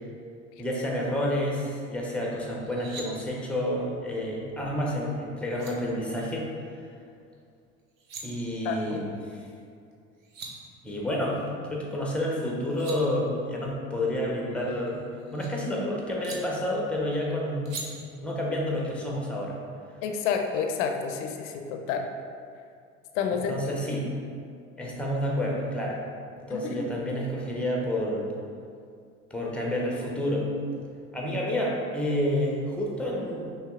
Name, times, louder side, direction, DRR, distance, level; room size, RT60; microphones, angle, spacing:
voice 1, 0.6-6.5 8.2-9.4 10.8-15.0 15.3-17.9 18.2-19.6 23.3-24.1 24.8-26.0 26.4-28.3 29.3-30.5 31.1-33.5, left 1 dB, 5° left, -3 dB, 0.8 m, -29 dB
sound 1, 2.6-3.1 5.1-5.2 5.5-5.7 7.8-8.2 9.9-10.0 10.2-10.5 12.4-13.0 14.5-15.5 16.2-16.4 17.7-17.9, right 4 dB, 85° right, 0.7 m, -41 dB
voice 2, 8.6-9.0 20.0-22.0 23.1-23.5 26.5-26.8, left 6 dB, 60° left, 5 dB, 0.6 m, -29 dB
5.6 x 3.2 x 2.4 m, 2.4 s
hypercardioid pair, 70°, 39 cm